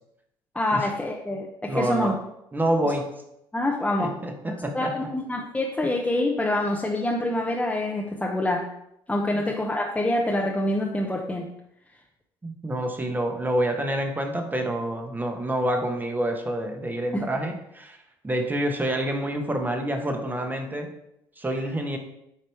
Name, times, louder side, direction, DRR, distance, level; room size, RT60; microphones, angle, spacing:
voice 1, 0.5-2.2 3.5-4.1 4.7-8.6 9.1-11.5 17.1-17.4, left 1 dB, 10° left, -1 dB, 0.9 m, -26 dB
voice 2, 1.7-2.2 2.5-3.1 4.0-5.1 9.4-9.5 12.4-18.0 18.2-20.9 21.4-22.0, right 1 dB, 15° right, 4 dB, 1.2 m, -27 dB
8.7 x 3.0 x 4.6 m, 0.80 s
hypercardioid pair, 70°, 11 cm